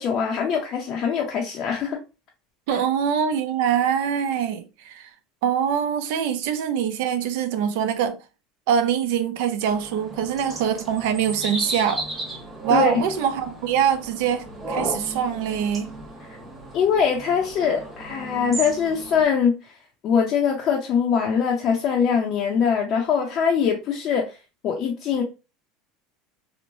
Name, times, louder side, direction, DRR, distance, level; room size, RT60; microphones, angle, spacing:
voice 1, 0.0-2.0 2.7-2.8 12.7-12.9 16.3-16.4 16.7-19.7 20.0-24.4 24.6-25.2, left 7 dB, 45° left, 0.5 m, -22 dB
voice 2, 2.7-5.1 5.4-8.2 8.7-12.1 12.6-15.9, right 8 dB, 75° right, 0.5 m, -24 dB
sound 1, 9.7-19.2, right 2 dB, 15° right, 1.1 m, -35 dB
3.0 x 2.1 x 2.6 m
supercardioid pair, 120°, 0 cm